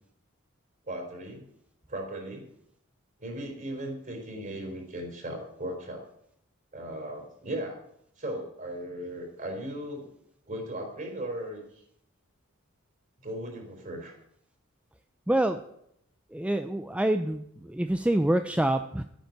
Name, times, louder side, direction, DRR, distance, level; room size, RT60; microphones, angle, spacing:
voice 1, 0.9-1.4 1.9-2.4 3.2-6.0 6.7-7.8 8.2-10.0 10.5-11.6 13.2-14.1, right 1 dB, 40° right, 1 dB, 4.0 m, -37 dB
voice 2, 15.3-15.6 16.3-19.0, right 1 dB, 5° right, 8 dB, 0.4 m, -26 dB
12.5 x 9.1 x 6.5 m, 0.74 s
head